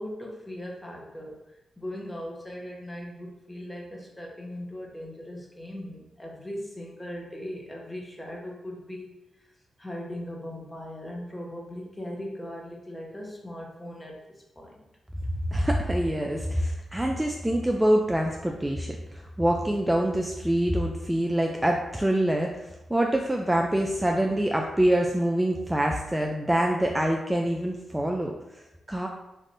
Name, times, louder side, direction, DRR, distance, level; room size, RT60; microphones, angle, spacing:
voice 1, 0.0-1.4 1.8-9.1 9.4-9.5 9.8-14.8, left 1 dB, 15° left, -2 dB, 0.9 m, -39 dB
voice 2, 15.5-29.1, right 1 dB, 15° right, 1 dB, 0.3 m, -25 dB
3.3 x 2.5 x 2.6 m, 0.96 s
supercardioid pair, 50°, 0 cm